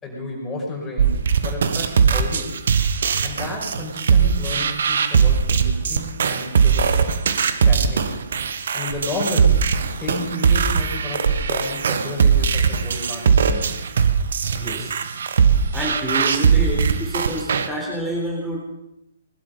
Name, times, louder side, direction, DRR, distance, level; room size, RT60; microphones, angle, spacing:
voice 1, 0.0-1.2 1.4-2.5 3.2-7.0 7.6-8.2 8.7-9.6 10.0-13.8, left 2 dB, 15° left, -2 dB, 5.6 m, -31 dB
sound 1, 1.0-17.7, right 6 dB, 60° right, 1.2 m, -20 dB
voice 2, 14.5-15.0 15.7-18.6, right 1 dB, 10° right, -3 dB, 4.1 m, -28 dB
20.5 x 12.0 x 5.3 m, 0.84 s
figure-of-eight pair, 125°, 0 cm